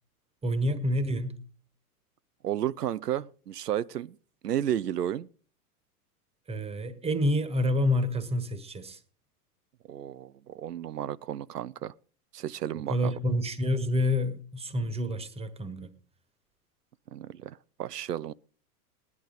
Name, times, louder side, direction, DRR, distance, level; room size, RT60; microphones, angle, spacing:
voice 1, 0.4-1.4 6.5-9.0 12.9-15.9, left 1 dB, 15° right, 1.4 m, -28 dB
voice 2, 2.4-4.2 4.4-5.3 9.9-11.9 12.3-13.1 17.1-18.3, right 11 dB, 85° right, 0.6 m, -32 dB
18.0 x 11.0 x 3.9 m
hypercardioid pair, 100°, 46 cm